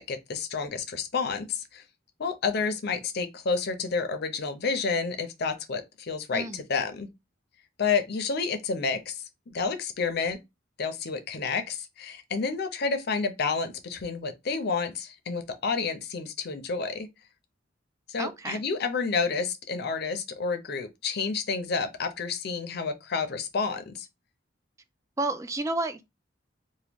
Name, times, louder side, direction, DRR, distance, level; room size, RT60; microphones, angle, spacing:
voice 1, 0.0-1.8 2.2-7.1 7.8-10.4 10.8-17.1 18.1-24.1, left 5 dB, 55° left, 0.6 m, -30 dB
voice 2, 6.3-6.6 18.2-18.6 25.2-26.0, right 2 dB, 15° right, 0.3 m, -30 dB
2.9 x 2.2 x 3.4 m
head